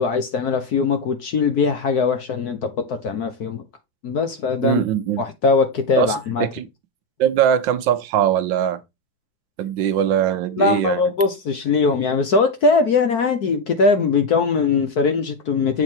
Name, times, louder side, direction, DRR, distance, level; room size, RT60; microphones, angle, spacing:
voice 1, 0.0-3.6 4.0-4.8 5.2-6.5 10.6-15.8, left 4 dB, 55° left, 1.2 m, -20 dB
voice 2, 4.6-5.2 6.0-6.1 6.4-6.7 7.2-8.8 9.6-11.0, right 10 dB, 70° right, 1.4 m, -20 dB
7.7 x 4.0 x 4.4 m
omnidirectional pair, 2.4 m